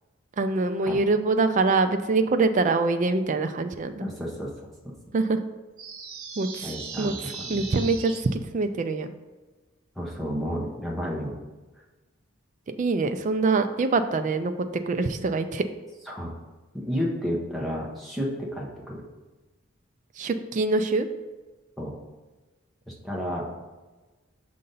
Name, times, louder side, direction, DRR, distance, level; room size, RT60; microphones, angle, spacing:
voice 1, 0.4-4.1 5.1-5.4 6.4-6.7 7.0-7.1 7.5-9.1 12.7-15.6 20.2-21.1, right 3 dB, 35° right, 8 dB, 0.3 m, -24 dB
voice 2, 4.0-4.5 6.6-7.6 10.0-11.4 16.1-16.3 16.7-19.0 21.8-21.9 22.9-23.5, equal, ahead, -4 dB, 0.9 m, -31 dB
sound 1, 5.8-8.2, right 5 dB, 85° right, 1.1 m, -38 dB
6.6 x 2.6 x 5.5 m, 1.2 s
head